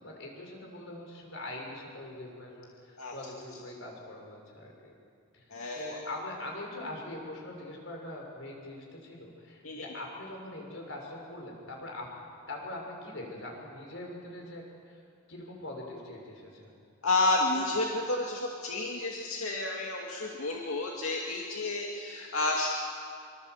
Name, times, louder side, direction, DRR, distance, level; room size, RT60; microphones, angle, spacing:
voice 1, 0.0-4.9 5.3-12.1 12.5-15.0 15.3-16.7, left 1 dB, 65° left, 0 dB, 6.4 m, -42 dB
voice 2, 5.5-6.0 9.6-9.9 17.0-22.7, left 2 dB, 90° left, -1 dB, 2.4 m, -30 dB
25.5 x 25.0 x 8.2 m, 2.4 s
head